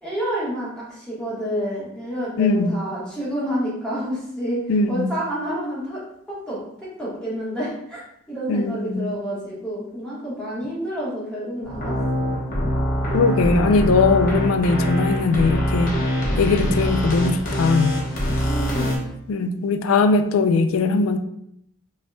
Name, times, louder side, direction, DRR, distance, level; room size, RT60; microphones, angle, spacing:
voice 1, 0.0-4.6 4.9-6.0 6.3-6.6 7.0-8.0 8.3-12.3 18.5-19.0, equal, 5° left, -8 dB, 1.3 m, -29 dB
voice 2, 2.4-2.8 4.7-5.1 8.5-9.1 13.1-15.9 16.4-18.0 19.3-21.2, left 3 dB, 70° left, 9 dB, 0.4 m, -20 dB
sound 1, 11.6-19.0, equal, 40° left, 1.0 m, -24 dB
5.4 x 3.0 x 2.2 m, 0.75 s
head